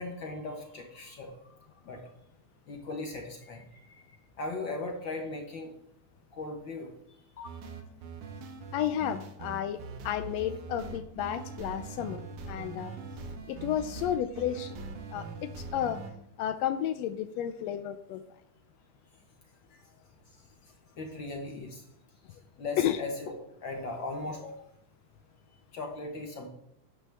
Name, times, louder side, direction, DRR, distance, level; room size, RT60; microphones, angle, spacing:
voice 1, 0.0-2.1 2.7-5.7 6.3-7.6 8.6-8.7 19.7-19.9 20.3-21.9 22.3-24.7 25.7-26.5, left 2 dB, 60° left, 2 dB, 1.3 m, -39 dB
sound 1, 7.4-16.1, right 4 dB, 80° right, 2.5 m, -42 dB
voice 2, 8.7-9.8 10.0-12.9 13.5-14.8 15.1-16.0 16.4-18.2 22.8-23.0, left 10 dB, 90° left, 9 dB, 1.5 m, -32 dB
11.5 x 8.9 x 3.4 m, 0.75 s
omnidirectional pair, 3.5 m